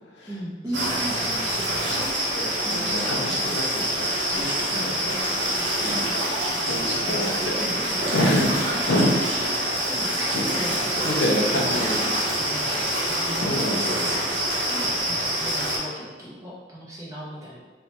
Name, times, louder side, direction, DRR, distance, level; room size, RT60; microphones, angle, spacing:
voice 1, 0.3-1.8 2.6-4.0 4.7-5.2 6.5-9.0 9.3-9.6 9.9-10.2 10.6-12.0 12.4-14.2 14.7-17.6, equal, 15° right, -5 dB, 0.4 m, -37 dB
sound 1, 0.7-15.8, right 1 dB, 85° right, 0.7 m, -26 dB
voice 2, 2.3-3.6 3.9-5.2 5.8-6.1 6.6-7.6 8.1-9.1 10.0-10.8 11.0-12.1 12.7-12.9 13.3-14.0, left 1 dB, 75° left, -1 dB, 0.5 m, -28 dB
2.9 x 2.1 x 2.8 m, 1.4 s
head